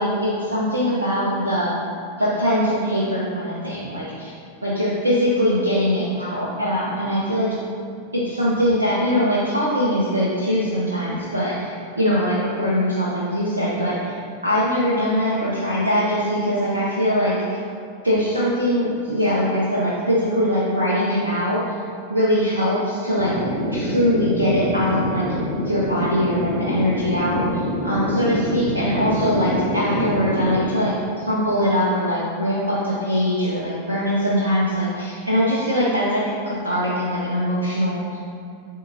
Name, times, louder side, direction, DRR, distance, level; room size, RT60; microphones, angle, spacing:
voice 1, 0.0-1.7 2.2-4.4 4.6-7.6 8.1-14.2 14.4-17.6 18.0-21.8 22.1-23.3 23.7-25.3 25.5-38.2, equal, 75° right, -6 dB, 0.8 m, -22 dB
sound 1, 23.2-30.6, equal, 20° right, 1.5 m, -26 dB
10.0 x 3.8 x 2.7 m, 2.5 s
figure-of-eight pair, 90°, 0 cm